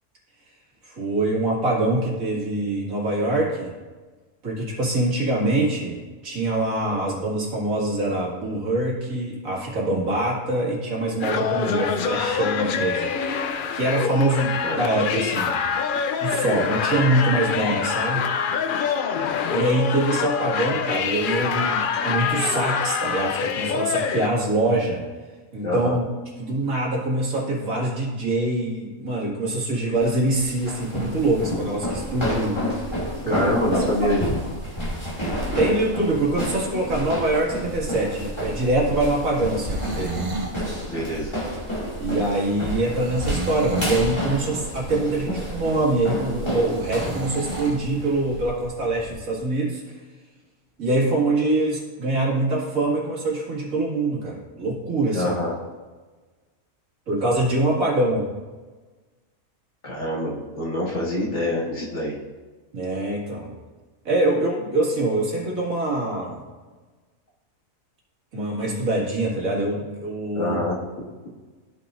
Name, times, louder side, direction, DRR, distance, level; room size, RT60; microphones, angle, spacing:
voice 1, 0.8-3.7 4.4-13.3 13.7-15.6 16.2-18.3 19.5-25.0 25.5-26.0 26.4-33.0 33.2-33.5 34.0-34.1 35.6-40.2 42.0-50.0 50.8-55.3 57.1-58.3 62.7-63.5 64.0-66.4 68.3-70.6, right 2 dB, 75° right, -4 dB, 2.4 m, -24 dB
sound 1, 11.2-24.3, left 6 dB, 85° left, 0.4 m, -25 dB
voice 2, 25.6-25.9 33.3-34.3 40.9-41.3 55.1-55.5 59.8-62.2 70.3-70.8, left 1 dB, 55° left, -6 dB, 2.2 m, -25 dB
sound 2, 29.9-49.2, equal, 20° left, 2.1 m, -30 dB
sound 3, 39.4-40.6 43.0-44.2 46.7-47.8, right 2 dB, 35° right, 0.9 m, -32 dB
14.0 x 5.8 x 2.5 m, 1.3 s
omnidirectional pair, 1.4 m